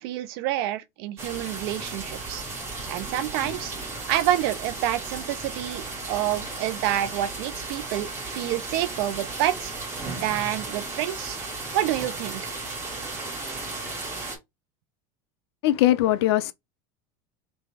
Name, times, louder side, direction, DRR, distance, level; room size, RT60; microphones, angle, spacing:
voice 1, 0.0-2.4 2.9-3.7 4.1-9.7 10.1-11.4 11.7-12.5, right 13 dB, 65° right, 0.7 m, -28 dB
sound 1, 1.2-14.3, right 3 dB, 20° right, 1.9 m, -35 dB
voice 2, 15.6-16.5, left 14 dB, 85° left, 0.6 m, -20 dB
3.4 x 3.2 x 4.2 m
supercardioid pair, 155°, 13 cm